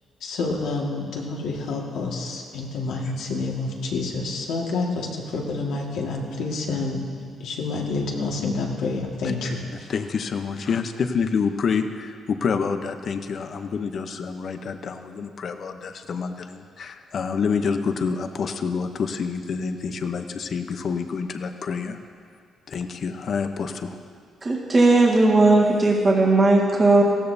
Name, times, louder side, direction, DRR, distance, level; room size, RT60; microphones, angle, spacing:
voice 1, 0.2-7.0 7.4-9.9, left 3 dB, 80° left, -1 dB, 1.8 m, -28 dB
voice 2, 9.9-22.0 22.7-24.0, left 5 dB, 55° left, 7 dB, 0.8 m, -27 dB
voice 3, 24.4-27.0, right 2 dB, 30° right, -2 dB, 1.8 m, -17 dB
16.0 x 13.5 x 2.7 m, 2.1 s
cardioid pair, 90°, 0 cm